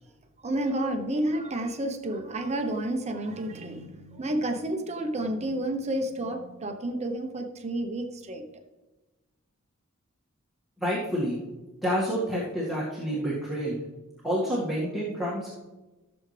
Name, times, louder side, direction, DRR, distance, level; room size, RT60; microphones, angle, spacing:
voice 1, 0.4-8.4, right 1 dB, 30° right, 4 dB, 0.9 m, -30 dB
voice 2, 10.8-11.4 11.8-13.8 14.2-15.5, equal, ahead, -8 dB, 2.0 m, -28 dB
15.5 x 7.1 x 3.4 m, 1.1 s
head